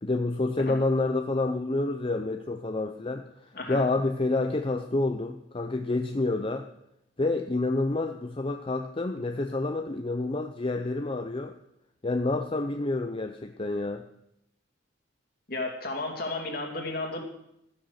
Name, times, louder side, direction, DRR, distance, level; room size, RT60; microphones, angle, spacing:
voice 1, 0.0-3.2 3.7-6.7 7.2-11.5 12.0-14.0, left 2 dB, 30° left, 6 dB, 0.6 m, -28 dB
voice 2, 15.5-17.2, left 2 dB, 55° left, 2 dB, 2.7 m, -33 dB
13.5 x 10.0 x 6.5 m, 0.82 s
head